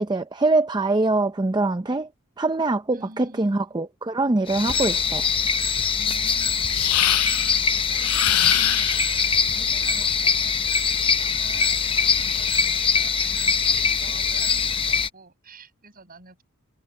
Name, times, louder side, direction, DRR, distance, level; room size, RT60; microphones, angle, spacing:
voice 1, 0.0-2.1 2.4-5.3, right 2 dB, 20° right, 0.5 m, -23 dB
voice 2, 2.9-3.6 6.0-16.4, right 3 dB, 40° right, 7.7 m, -47 dB
sound 1, 4.5-15.1, left 6 dB, 25° left, 0.8 m, -22 dB
sound 2, 6.7-7.6 8.0-9.2 10.9-12.8, left 15 dB, 85° left, 0.5 m, -27 dB
head